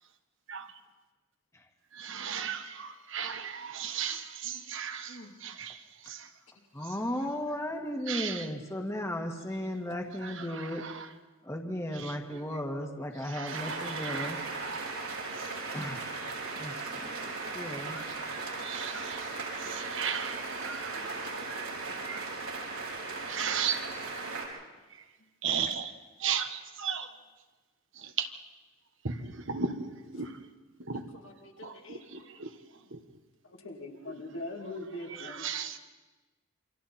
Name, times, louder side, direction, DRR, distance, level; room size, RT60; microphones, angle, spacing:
voice 1, 1.9-6.3 8.1-8.5 10.2-11.1 12.0-12.1 13.2-15.5 17.7-22.3 23.3-23.8 25.4-25.9 26.2-27.1 27.9-28.3 29.0-30.4 30.8-31.1 31.6-32.5 32.9-33.0 35.2-35.8, right 7 dB, 65° right, 1.4 m, -36 dB
voice 2, 6.7-10.8 11.4-14.4 15.7-16.1 16.6-18.0, left 1 dB, 15° left, 1.8 m, -35 dB
sound 1, 13.5-24.5, right 3 dB, 90° right, 5.2 m, -37 dB
voice 3, 30.9-32.0 33.4-35.5, left 1 dB, 70° left, 3.0 m, -43 dB
28.0 x 25.5 x 4.4 m
head